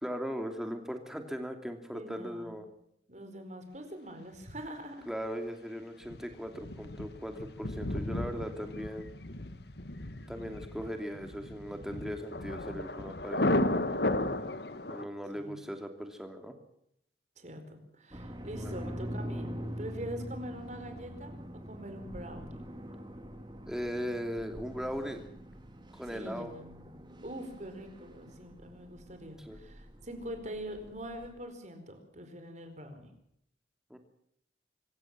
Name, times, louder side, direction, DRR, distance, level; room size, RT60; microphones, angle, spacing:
voice 1, 0.0-2.7 5.1-9.1 10.3-13.9 14.9-16.5 18.5-18.8 23.7-25.2 25.9-26.5 29.4-29.6 33.9-34.0, equal, 5° right, 5 dB, 2.9 m, -38 dB
voice 2, 1.9-2.6 3.1-5.1 15.3-15.6 17.4-21.3 21.6-22.6 26.1-26.8 27.2-33.1, equal, 40° right, 7 dB, 4.6 m, -44 dB
Thunder, 6.0-15.0, left 1 dB, 65° left, 1.6 m, -34 dB
sound 1, 18.1-31.3, equal, 25° right, 2.7 m, -44 dB
25.0 x 15.5 x 7.5 m, 0.74 s
head